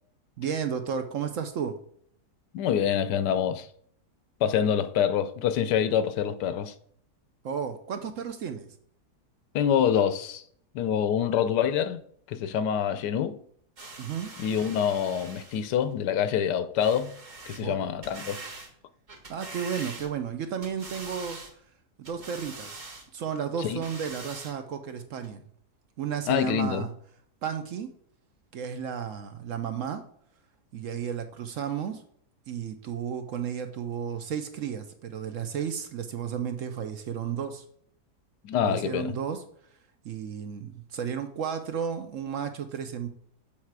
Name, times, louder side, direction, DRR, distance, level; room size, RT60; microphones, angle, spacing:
voice 1, 0.4-1.8 7.4-8.7 14.0-14.3 17.6-17.8 19.3-21.4 22.0-22.8 23.1-25.4 26.0-26.9 27.4-27.9 28.5-30.0 30.7-32.0 32.5-37.6 38.6-39.4 40.0-43.1, right 7 dB, 65° right, 0.9 m, -33 dB
voice 2, 2.5-3.7 4.4-6.7 9.5-10.4 10.7-12.0 12.3-13.4 14.4-17.1 17.5-18.4 23.6-23.8 26.3-26.9 38.4-39.1, left 8 dB, 90° left, 1.3 m, -26 dB
sound 1, 13.8-15.7 16.8-17.6 18.0-18.7 19.1-20.3 20.6-21.5 22.0-23.1 23.6-24.6 25.2-25.3, right 3 dB, 35° right, 0.9 m, -43 dB
7.4 x 4.5 x 4.6 m
omnidirectional pair, 1.8 m